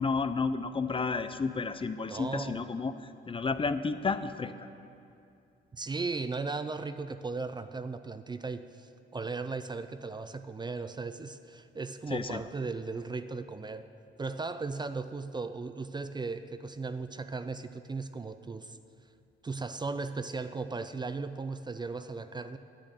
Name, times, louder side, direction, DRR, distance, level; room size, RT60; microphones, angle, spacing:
voice 1, 0.0-4.7 12.1-12.4, left 4 dB, 25° left, 11 dB, 0.5 m, -32 dB
voice 2, 2.1-2.7 5.7-13.9 14.2-18.8 19.4-22.6, right 4 dB, 20° right, 10 dB, 0.5 m, -37 dB
10.0 x 9.7 x 8.2 m, 2.5 s
cardioid pair, 90°, 20 cm